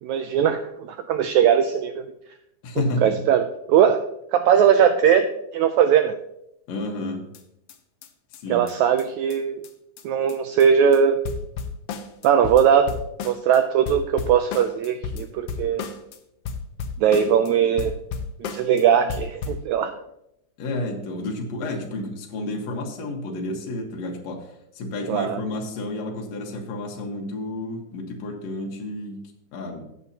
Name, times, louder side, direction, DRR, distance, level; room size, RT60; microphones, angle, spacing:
voice 1, 0.0-2.0 3.0-4.0 4.3-6.2 8.5-9.6 10.0-11.2 12.2-12.9 13.2-15.8 17.0-17.9 18.4-19.9 25.1-25.4, right 8 dB, 85° right, 8 dB, 1.6 m, -20 dB
voice 2, 2.6-3.2 6.7-7.3 8.4-8.7 17.1-17.2 20.6-24.5 24.8-29.9, left 2 dB, 60° left, 0 dB, 2.4 m, -31 dB
sound 1, 7.3-7.4 7.7-7.8 8.0-8.1 8.3-8.4 8.7-8.8 9.0-9.1 9.3-9.4 9.6-9.7 10.0-10.1 10.3-10.7 10.9-11.0 11.2-13.6 13.9-16.2 16.5-17.5 17.8-18.8 19.1-19.7, left 5 dB, 85° left, 1.3 m, -33 dB
14.0 x 8.6 x 2.8 m, 0.80 s
omnidirectional pair, 3.8 m